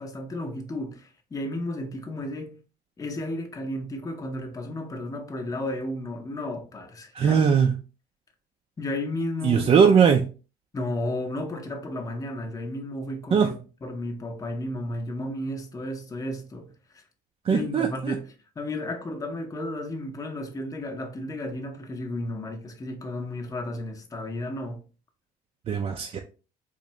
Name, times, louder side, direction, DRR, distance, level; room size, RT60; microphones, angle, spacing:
voice 1, 0.0-2.5 3.0-7.4 8.8-9.7 10.7-17.0 17.5-18.3 18.6-24.8, left 1 dB, 20° left, 0.6 m, -33 dB
voice 2, 7.1-7.8 9.4-10.3 13.3-13.5 17.4-18.2 25.7-26.2, right 6 dB, 35° right, 0.4 m, -20 dB
3.8 x 2.6 x 3.0 m
cardioid pair, 110°, 17 cm